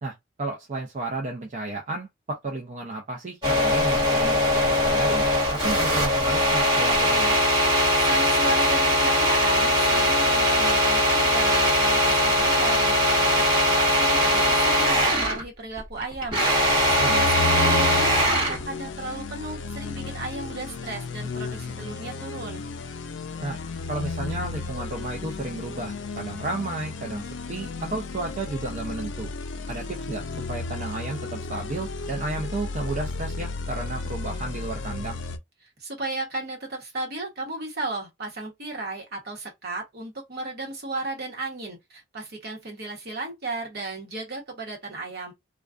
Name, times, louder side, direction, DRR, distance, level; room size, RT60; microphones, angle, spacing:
voice 1, 0.0-7.4 17.0-17.3 23.4-23.6 23.9-29.3 29.7-30.2 30.5-35.2, right 2 dB, 40° right, 0.5 m, -33 dB
sound 1, 3.4-15.4 15.8-18.6, equal, 25° right, 1.3 m, -21 dB
voice 2, 7.7-16.4 16.7-22.6 35.6-45.3, right 2 dB, 55° right, 1.0 m, -34 dB
sound 2, 16.7-35.4, left 3 dB, 70° left, 0.4 m, -33 dB
2.3 x 2.2 x 2.4 m
head